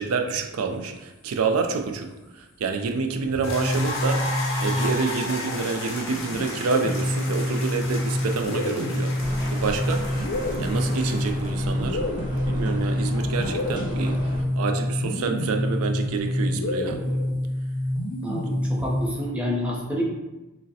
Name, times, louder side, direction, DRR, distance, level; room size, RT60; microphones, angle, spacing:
voice 1, 0.0-4.3 4.6-9.2 9.5-10.1 10.6-12.0 12.3-14.2 14.6-17.2, right 4 dB, 85° right, 5 dB, 0.4 m, -28 dB
sound 1, 3.2-5.4 6.3-19.3, left 1 dB, 90° left, 0.6 m, -27 dB
sound 2, 3.4-11.6, left 2 dB, 60° left, 0.9 m, -34 dB
sound 3, 9.2-14.4, equal, 20° right, 1.0 m, -34 dB
voice 2, 18.2-20.0, left 1 dB, 5° right, -4 dB, 0.6 m, -28 dB
6.0 x 2.1 x 2.7 m, 1.1 s
head